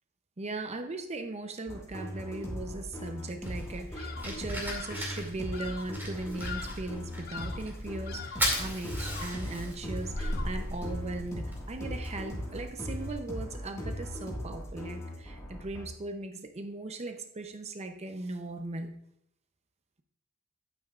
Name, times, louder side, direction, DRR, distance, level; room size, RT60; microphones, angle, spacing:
voice 1, 0.4-18.9, right 2 dB, 30° right, 6 dB, 0.6 m, -38 dB
sound 1, 1.7-15.9, equal, 15° left, 1.8 m, -38 dB
Fire, 3.4-13.1, equal, 10° right, 2.4 m, -38 dB
Bird vocalization bird call bird song, 4.0-4.4 4.6-5.1 5.5-6.0 6.4-6.9 7.2-7.7 8.1-8.6 9.0-9.5 10.1-10.7, left 7 dB, 45° left, 0.7 m, -43 dB
12.0 x 8.9 x 2.4 m, 0.74 s
head